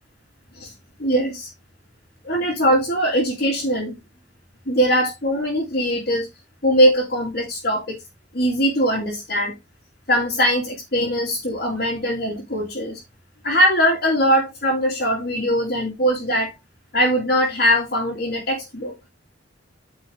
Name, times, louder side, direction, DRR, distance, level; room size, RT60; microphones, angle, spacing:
voice 1, 1.0-1.5 2.2-3.9 4.7-6.3 6.6-8.0 8.3-9.5 10.1-13.0 13.4-16.5 16.9-18.9, equal, 55° left, 2.7 m, -21 dB
9.3 x 5.3 x 3.4 m
head